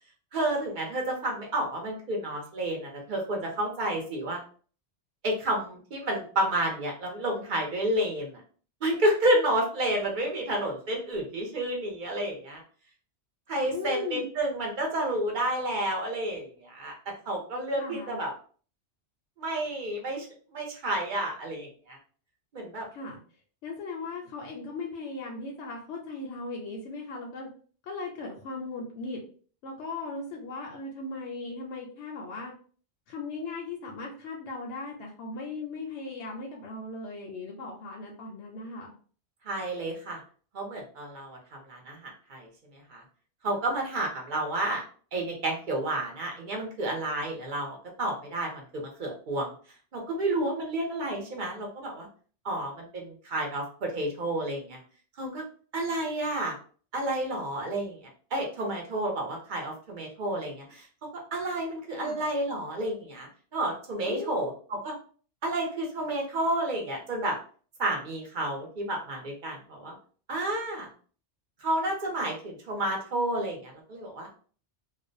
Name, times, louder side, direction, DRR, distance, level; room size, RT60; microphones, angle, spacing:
voice 1, 0.3-4.4 5.2-8.4 8.8-12.6 13.5-17.0 17.3-18.3 19.4-20.3 20.5-22.0 22.5-22.9 39.4-40.2 40.5-43.0 43.4-44.8 45.1-49.5 49.9-52.1 52.4-54.8 55.2-55.4 55.7-56.5 56.9-58.0 58.3-60.9 61.3-64.9 65.4-67.4 67.8-69.9 70.3-70.9 71.6-74.3, right 1 dB, 50° right, 0 dB, 0.8 m, -30 dB
voice 2, 13.7-14.3 17.8-18.2 22.9-23.2 23.6-27.5 27.8-29.2 29.6-32.5 33.1-38.9 61.9-62.2 64.1-64.5, left 3 dB, 85° left, -1 dB, 0.9 m, -37 dB
2.4 x 2.1 x 2.5 m, 0.42 s
omnidirectional pair, 1.2 m